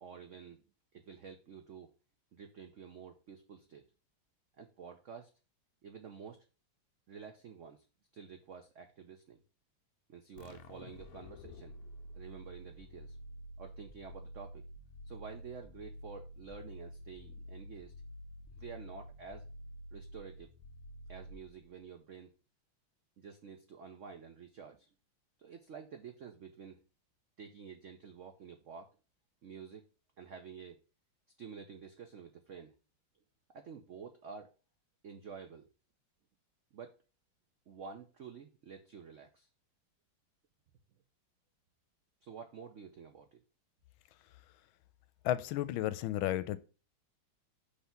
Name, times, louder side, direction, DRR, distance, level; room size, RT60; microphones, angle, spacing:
voice 1, 0.0-0.6 0.9-1.9 2.3-3.8 4.6-5.3 5.8-6.4 7.1-7.9 8.1-9.4 10.1-11.8 12.1-13.2 13.6-14.6 15.1-17.9 18.5-19.5 19.9-20.5 21.1-22.3 23.2-24.9 25.4-26.8 27.4-28.9 29.4-29.9 30.2-30.8 31.4-32.7 33.5-34.5 35.0-35.7 36.7-37.0 37.7-39.5 42.2-43.4, right 6 dB, 90° right, 0.6 m, -50 dB
sound 1, 10.4-21.8, equal, 70° left, 0.9 m, -50 dB
voice 2, 45.2-46.6, left 13 dB, 85° left, 1.4 m, -33 dB
5.8 x 3.3 x 5.7 m
omnidirectional pair, 2.2 m